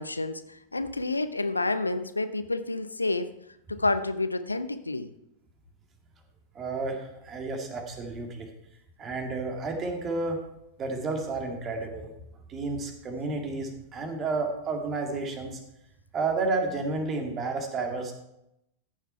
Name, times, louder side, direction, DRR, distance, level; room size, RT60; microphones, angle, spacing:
voice 1, 0.0-3.3 3.7-5.1, left 2 dB, 80° left, 11 dB, 0.7 m, -29 dB
voice 2, 6.5-8.5 9.0-10.4 10.8-12.1 12.5-15.6 16.1-18.1, right 3 dB, 25° right, 4 dB, 2.2 m, -31 dB
14.5 x 7.4 x 4.5 m, 0.82 s
figure-of-eight pair, 90°, 0 cm